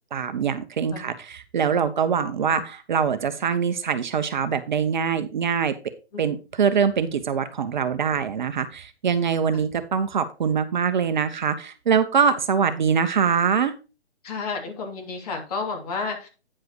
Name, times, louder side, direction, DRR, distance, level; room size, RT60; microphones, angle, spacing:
voice 1, 0.1-5.7 6.2-13.7, right 7 dB, 45° right, 10 dB, 0.8 m, -23 dB
voice 2, 14.2-16.3, left 4 dB, 35° left, 3 dB, 2.7 m, -31 dB
9.4 x 7.6 x 3.0 m, 0.30 s
hypercardioid pair, 150°, 34 cm